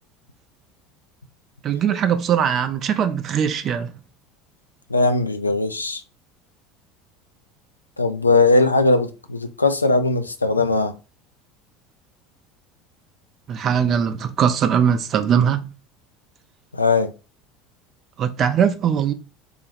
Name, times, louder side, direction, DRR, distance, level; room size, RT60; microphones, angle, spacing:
voice 1, 1.6-3.9 13.5-15.7 18.2-19.1, right 8 dB, 40° right, 0.5 m, -20 dB
voice 2, 4.9-6.0 8.0-11.0 16.7-17.1, left 3 dB, 85° left, 0.3 m, -19 dB
3.8 x 2.2 x 3.2 m
figure-of-eight pair, 70°, 0 cm